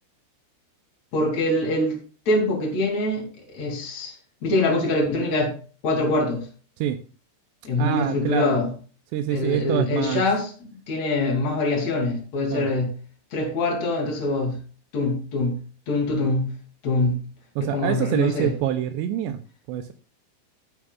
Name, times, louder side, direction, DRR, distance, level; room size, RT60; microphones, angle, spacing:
voice 1, 1.1-4.1 4.4-5.6 5.8-6.5 7.6-8.7 9.3-12.9 13.3-14.6 14.9-15.5 15.9-16.5 16.8-17.2 17.6-18.5, left 2 dB, 40° left, 3.4 m, -24 dB
voice 2, 7.8-8.6 9.1-10.2 12.5-12.7 17.6-19.4 19.7-19.9, right 11 dB, 90° right, 2.5 m, -25 dB
12.0 x 9.6 x 2.4 m
omnidirectional pair, 5.7 m